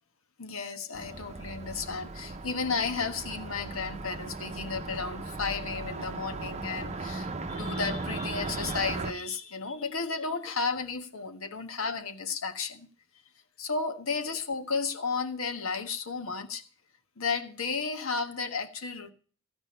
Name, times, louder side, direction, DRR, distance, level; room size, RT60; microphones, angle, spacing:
voice 1, 0.4-12.9 13.6-16.6 17.2-19.1, left 4 dB, 90° left, 1.4 m, -33 dB
Car passing by, 0.9-9.1, right 3 dB, 35° right, 0.8 m, -37 dB
15.0 x 5.1 x 8.6 m
head